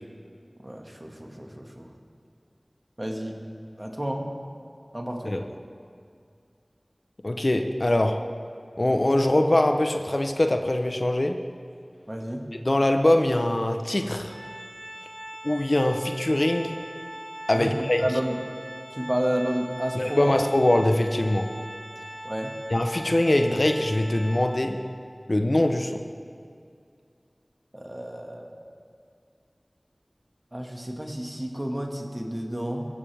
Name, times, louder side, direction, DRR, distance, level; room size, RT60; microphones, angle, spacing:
voice 1, 0.6-1.9 3.0-3.4 3.8-4.3 4.9-5.4 12.1-12.5 17.5-18.6 18.9-20.4 22.2-22.5 27.7-28.6 30.5-32.9, equal, 30° right, 1 dB, 2.0 m, -31 dB
voice 2, 7.2-8.2 8.8-11.4 12.6-14.3 15.4-16.8 17.5-18.0 19.9-21.5 22.7-24.8 25.3-26.0, left 1 dB, 55° left, 5 dB, 0.9 m, -23 dB
Organ, 14.2-24.9, equal, 70° right, 4.7 m, -41 dB
23.0 x 15.0 x 3.5 m, 2.3 s
wide cardioid pair, 40°, 0 cm